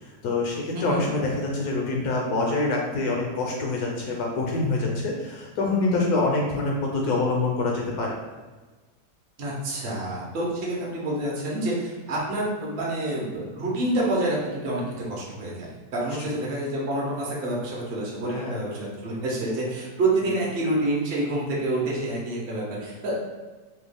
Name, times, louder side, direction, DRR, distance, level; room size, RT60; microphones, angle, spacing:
voice 1, 0.0-8.2 16.0-16.1 18.3-18.6 20.2-20.3, left 3 dB, 70° left, -1 dB, 1.0 m, -26 dB
voice 2, 0.7-1.0 9.4-14.8 15.1-23.3, right 1 dB, 50° right, -4 dB, 0.7 m, -28 dB
3.0 x 2.3 x 3.3 m, 1.3 s
omnidirectional pair, 1.9 m